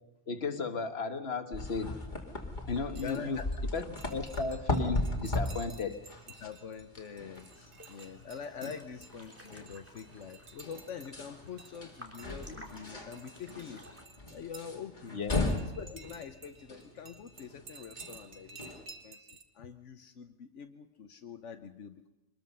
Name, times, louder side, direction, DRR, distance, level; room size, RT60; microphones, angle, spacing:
voice 1, 0.3-2.0 2.7-3.4 3.7-3.8 4.1-6.0 15.1-15.4, left 4 dB, 60° left, 6 dB, 1.7 m, -34 dB
sound 1, 1.5-18.8, left 2 dB, 40° left, 2.6 m, -38 dB
sound 2, 2.7-14.7 15.1-19.4, right 4 dB, 70° right, 1.9 m, -54 dB
voice 2, 3.0-3.5 6.4-13.8 14.3-15.2 15.6-18.7 19.0-19.3 19.5-22.1, left 7 dB, 85° left, 7 dB, 1.2 m, -45 dB
sound 3, 7.4-14.0, equal, 10° right, 2.8 m, -54 dB
24.0 x 20.5 x 5.5 m, 0.98 s
omnidirectional pair, 1.2 m